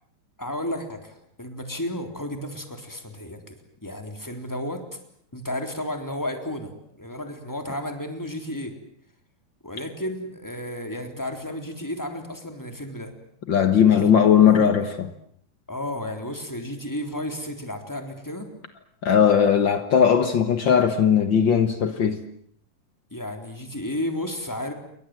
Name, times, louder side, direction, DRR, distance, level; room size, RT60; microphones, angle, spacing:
voice 1, 0.4-3.6 3.8-4.8 5.3-8.7 9.6-13.1 13.9-14.9 15.7-18.5 23.1-24.7, left 1 dB, 5° left, 3.2 m, -33 dB
voice 2, 13.5-15.1 19.0-22.2, left 8 dB, 75° left, 1.0 m, -18 dB
29.0 x 23.5 x 7.8 m
omnidirectional pair, 4.3 m